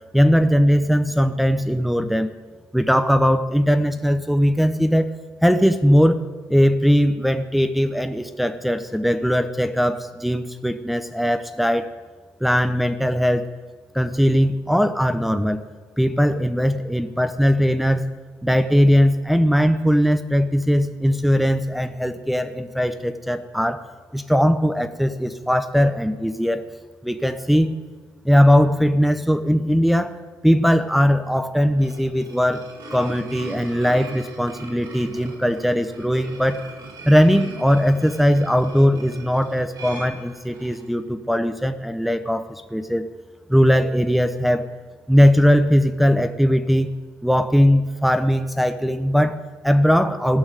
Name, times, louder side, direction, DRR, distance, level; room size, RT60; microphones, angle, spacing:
voice 1, 0.1-2.3 2.7-5.1 5.4-6.2 6.5-11.9 12.4-13.5 13.9-15.6 16.0-18.0 18.4-23.8 24.1-26.6 27.0-27.7 28.2-30.1 30.4-32.7 32.9-36.6 37.1-43.0 43.5-44.7 45.1-46.9 47.2-50.4, equal, ahead, 7 dB, 0.9 m, -19 dB
sound 1, 31.6-40.9, right 3 dB, 65° right, 5.4 m, -40 dB
15.5 x 6.2 x 9.2 m, 1.4 s
supercardioid pair, 60°, 7 cm